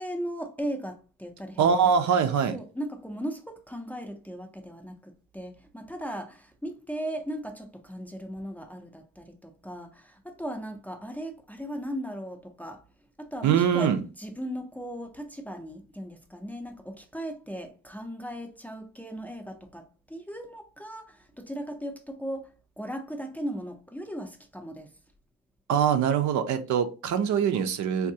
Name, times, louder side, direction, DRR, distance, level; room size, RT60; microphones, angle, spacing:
voice 1, 0.0-1.7 2.5-12.8 13.2-24.9, equal, 5° left, 0.4 m, -37 dB
voice 2, 1.6-2.6 13.4-14.0 25.7-28.1, right 7 dB, 70° right, 0.5 m, -23 dB
3.5 x 2.3 x 2.7 m
cardioid pair, 90°, 30 cm